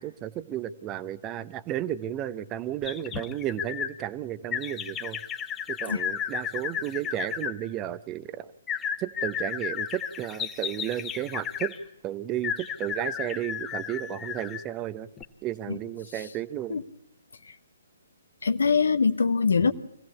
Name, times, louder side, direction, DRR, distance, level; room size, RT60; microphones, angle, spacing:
voice 1, 0.0-5.2 5.7-8.5 9.0-11.7 12.0-15.1 15.4-16.8, right 12 dB, 20° right, 14 dB, 0.9 m, -33 dB
sound 1, 2.8-3.9 4.5-7.5 8.7-11.8 12.4-14.7 15.2-15.3, left 8 dB, 15° left, 1.5 m, -33 dB
voice 2, 18.4-19.7, left 5 dB, 70° left, 11 dB, 1.2 m, -23 dB
25.5 x 16.5 x 8.4 m, 0.82 s
figure-of-eight pair, 130°, 0 cm